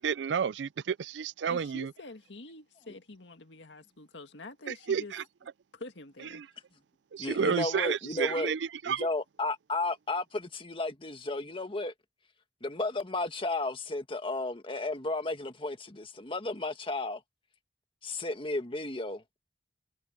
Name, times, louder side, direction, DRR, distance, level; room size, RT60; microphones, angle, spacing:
voice 1, 0.0-1.9 4.7-5.2 6.3-6.5 7.1-9.1, right 7 dB, 80° right, 0.4 m, -31 dB
voice 2, 1.5-5.1 5.7-6.4, left 2 dB, 85° left, 1.9 m, -46 dB
voice 3, 7.2-8.5 8.9-11.9 12.6-17.2 18.0-19.2, left 2 dB, 30° left, 1.7 m, -33 dB
head